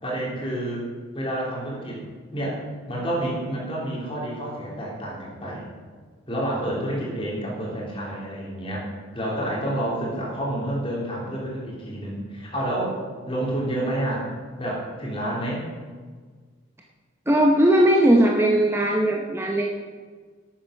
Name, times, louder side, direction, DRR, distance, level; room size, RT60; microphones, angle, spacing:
voice 1, 0.0-0.8 1.1-2.0 2.3-2.6 2.9-5.7 6.3-8.9 9.1-13.0 13.3-14.3 14.6-15.6, right 1 dB, 25° left, -4 dB, 3.7 m, -29 dB
voice 2, 17.3-19.7, right 1 dB, 10° right, 0 dB, 0.8 m, -18 dB
12.0 x 8.7 x 5.9 m, 1.5 s
head